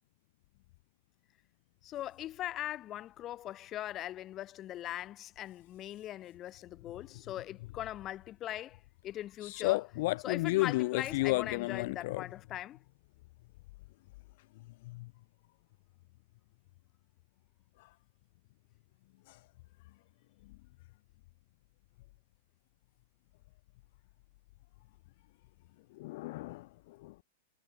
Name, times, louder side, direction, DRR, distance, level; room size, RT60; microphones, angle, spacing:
voice 1, 1.8-9.8 10.2-12.8, left 13 dB, 30° left, 0.8 m, -40 dB
voice 2, 9.4-12.2 14.8-15.1 17.8-17.9 19.3-19.4 25.9-27.2, left 20 dB, 60° left, 0.3 m, -33 dB
hypercardioid pair, 125°, 0 cm